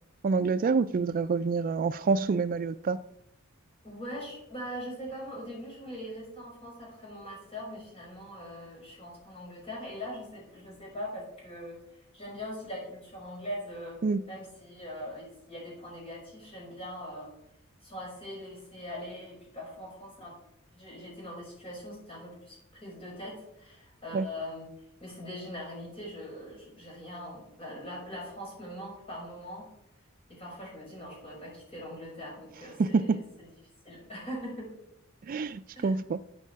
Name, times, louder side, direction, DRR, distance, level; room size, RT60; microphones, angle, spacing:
voice 1, 0.2-3.0 14.0-14.2 24.1-24.3 32.8-33.2 35.3-36.2, right 4 dB, 40° right, 0.3 m, -27 dB
voice 2, 3.8-14.0 14.3-17.3 17.8-20.4 20.7-24.7 25.0-29.7 30.3-33.2 33.5-33.6 33.8-34.7 35.8-36.0, equal, 30° left, 5.6 m, -41 dB
13.0 x 8.3 x 4.6 m
head